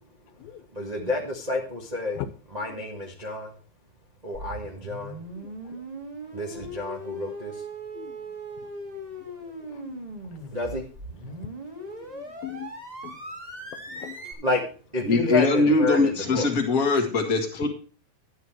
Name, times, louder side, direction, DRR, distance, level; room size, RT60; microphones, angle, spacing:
voice 1, 0.7-2.2 2.5-3.6 4.2-5.2 6.3-7.6 10.5-10.8 14.4-14.6 14.9-16.5, left 2 dB, 80° right, 0.3 m, -29 dB
sound 1, 4.3-14.3, right 1 dB, 20° right, 1.1 m, -39 dB
voice 2, 5.4-5.8 6.3-6.4 7.9-8.3 9.2-9.3 9.7-10.2 11.3-11.5 11.9-12.7 13.0-13.2 13.7-14.5, left 13 dB, 80° left, 2.7 m, -41 dB
voice 3, 15.0-17.7, left 3 dB, 35° left, 1.5 m, -22 dB
11.5 x 8.1 x 4.6 m
omnidirectional pair, 4.2 m